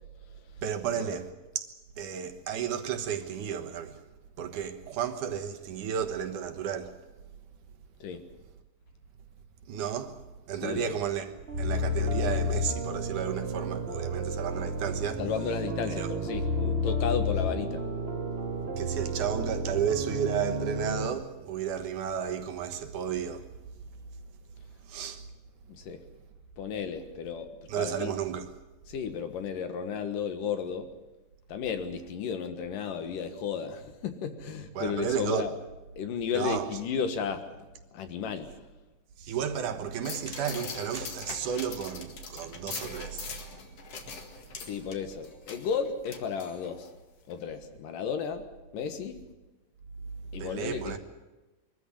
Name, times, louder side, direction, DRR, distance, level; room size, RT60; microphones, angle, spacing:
voice 1, 0.6-1.7 2.0-4.0 4.4-7.0 9.7-10.2 10.5-15.2 16.0-16.1 18.8-23.5 24.8-25.2 27.7-28.5 34.8-35.5 36.3-36.7 39.2-43.3 50.4-51.0, right 8 dB, 70° right, 2.7 m, -33 dB
voice 2, 10.6-11.0 15.2-17.9 25.7-26.0 26.6-28.2 28.9-30.9 31.5-35.5 36.0-38.7 44.6-46.9 47.3-49.2 50.3-51.0, left 6 dB, 70° left, 3.1 m, -34 dB
sound 1, 11.5-21.1, left 1 dB, 90° right, 0.5 m, -31 dB
sound 2, 40.0-46.9 47.3-47.4, left 5 dB, 50° left, 2.7 m, -42 dB
22.5 x 14.0 x 10.0 m
omnidirectional pair, 4.0 m